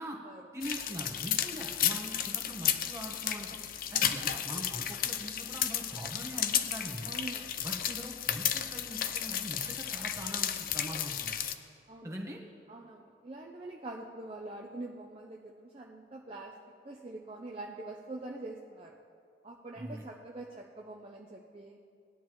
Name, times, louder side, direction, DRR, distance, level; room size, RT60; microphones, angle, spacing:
voice 1, 0.5-3.6 3.9-7.1 7.6-11.3 12.0-12.4 19.7-20.0, equal, 15° right, -1 dB, 1.3 m, -42 dB
sound 1, 0.6-11.6, left 10 dB, 50° left, 0.5 m, -33 dB
voice 2, 7.0-7.6 11.9-12.1 12.7-16.5 16.8-19.0 19.4-21.8, right 2 dB, 30° right, 0 dB, 0.6 m, -44 dB
19.0 x 10.5 x 3.1 m, 2.3 s
head